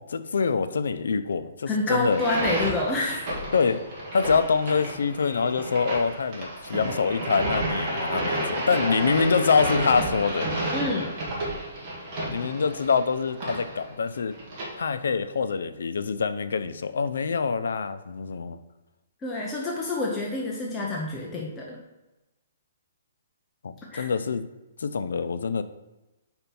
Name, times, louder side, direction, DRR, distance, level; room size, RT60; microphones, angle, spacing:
voice 1, 0.0-2.2 3.5-3.8 4.1-10.5 12.3-14.4 14.8-18.6 23.6-24.4 24.8-25.6, left 5 dB, 85° left, 12 dB, 0.4 m, -25 dB
voice 2, 1.7-3.3 10.7-11.2 19.2-21.8 23.9-24.1, left 2 dB, 10° left, -3 dB, 0.6 m, -28 dB
sound 1, 2.0-14.6, right 1 dB, 25° right, 1.6 m, -31 dB
4.4 x 4.3 x 5.3 m, 1.0 s
hypercardioid pair, 170°, 0 cm